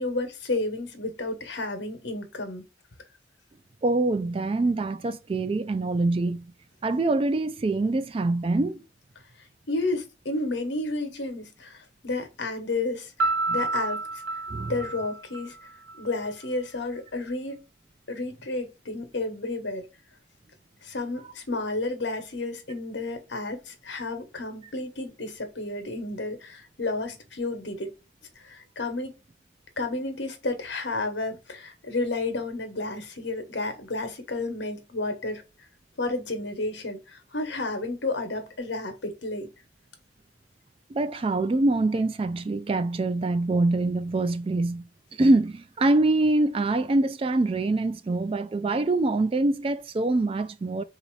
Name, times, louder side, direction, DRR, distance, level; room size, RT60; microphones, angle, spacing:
voice 1, 0.0-2.7 9.7-14.0 14.7-15.6 16.0-17.6 18.1-19.9 20.8-27.9 28.4-29.1 29.8-35.4 36.0-39.5, left 2 dB, 70° left, 1.1 m, -31 dB
voice 2, 3.8-6.4 6.8-8.8 14.5-14.7 40.9-44.8 45.2-50.8, right 2 dB, 30° right, 0.3 m, -24 dB
Piano, 13.2-16.0, right 3 dB, 80° right, 0.5 m, -29 dB
4.0 x 2.7 x 4.6 m
head